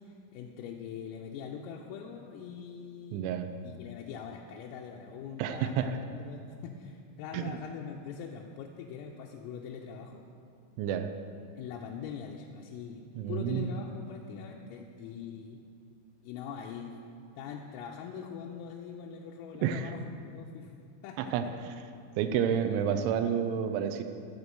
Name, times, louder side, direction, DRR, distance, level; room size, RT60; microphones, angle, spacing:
voice 1, 0.0-3.3 3.6-10.3 11.6-15.6 16.2-17.0 17.4-20.7 21.0-21.5, left 7 dB, 85° left, -1 dB, 3.4 m, -43 dB
voice 2, 3.1-3.5 5.4-6.0 7.3-7.6 10.8-11.1 13.2-13.8 19.6-19.9 21.2-21.5 22.2-24.0, right 8 dB, 80° right, 7 dB, 2.9 m, -30 dB
14.0 x 7.1 x 6.7 m, 2.5 s
omnidirectional pair, 6.0 m